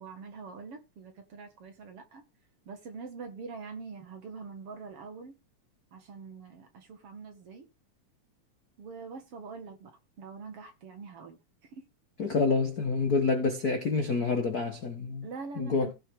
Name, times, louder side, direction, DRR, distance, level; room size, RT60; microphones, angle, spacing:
voice 1, 0.0-2.2 2.7-5.3 5.9-7.7 8.8-11.4 11.7-11.8 15.2-15.9, right 4 dB, 50° right, 2.5 m, -44 dB
voice 2, 12.2-15.3 15.6-15.9, left 4 dB, 50° left, 1.1 m, -27 dB
16.5 x 5.7 x 3.6 m
omnidirectional pair, 3.6 m